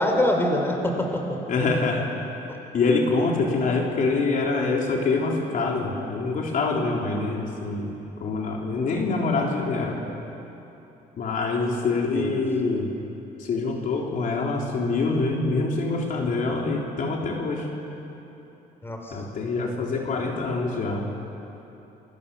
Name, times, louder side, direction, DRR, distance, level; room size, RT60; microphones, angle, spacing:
voice 1, 0.0-1.4 2.5-2.6 11.8-12.4 18.8-19.2, left 1 dB, 15° left, 2 dB, 4.4 m, -25 dB
voice 2, 1.5-2.1 2.7-7.9 8.2-10.0 11.2-12.9 13.4-17.7 19.1-21.0, left 3 dB, 50° left, -1 dB, 3.7 m, -25 dB
28.5 x 24.5 x 7.0 m, 3.0 s
cardioid pair, 110°, 17 cm